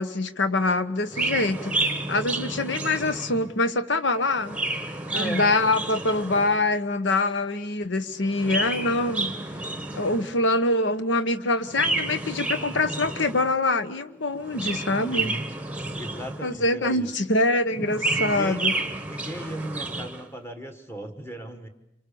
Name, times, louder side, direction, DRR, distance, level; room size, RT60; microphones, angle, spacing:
voice 1, 0.0-4.6 5.1-9.3 9.9-15.3 16.4-18.7, left 2 dB, 70° left, 12 dB, 1.1 m, -24 dB
Chirp tweet, 1.1-3.6 4.3-6.7 8.2-10.4 11.7-13.6 14.4-16.6 17.7-20.2, right 2 dB, 5° right, 1.2 m, -30 dB
voice 2, 5.1-5.5 15.0-15.5 15.9-17.1 18.1-18.7 19.0-21.7, right 1 dB, 10° left, 6 dB, 1.7 m, -36 dB
26.5 x 24.0 x 7.0 m, 0.85 s
head